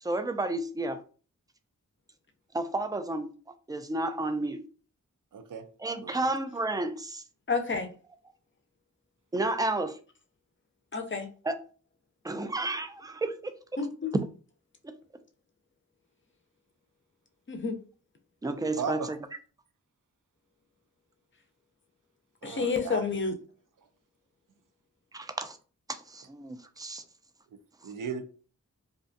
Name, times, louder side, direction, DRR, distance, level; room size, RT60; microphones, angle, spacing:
voice 1, 0.0-1.0 2.5-3.3 3.7-4.6 5.8-7.2 9.3-10.0 11.4-11.6 12.2-13.5 14.8-14.9 18.4-19.0 25.1-25.6 25.9-27.0, right 2 dB, 10° right, 0.3 m, -31 dB
voice 2, 5.3-5.7 6.0-6.3 18.6-19.1 22.4-23.1 23.8-23.9 27.5-27.6 27.8-28.2, right 6 dB, 75° right, 0.5 m, -37 dB
voice 3, 7.5-7.9 10.9-11.3 13.8-14.1 17.5-17.8 22.4-23.3, left 4 dB, 40° left, 0.5 m, -29 dB
2.5 x 2.2 x 2.5 m
wide cardioid pair, 50°, 32 cm